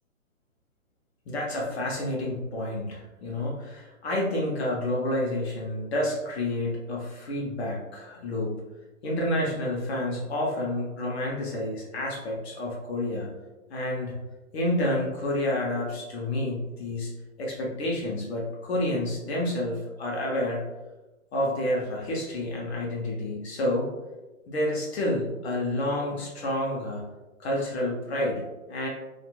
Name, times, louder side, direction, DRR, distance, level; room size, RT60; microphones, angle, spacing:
voice 1, 1.3-8.6 9.0-13.3 13.7-14.2 14.5-17.1 17.4-20.6 21.3-23.9 24.5-27.1 27.4-28.9, left 1 dB, 50° left, -3 dB, 0.8 m, -29 dB
2.8 x 2.5 x 2.3 m, 1.1 s
hypercardioid pair, 140°, 40 cm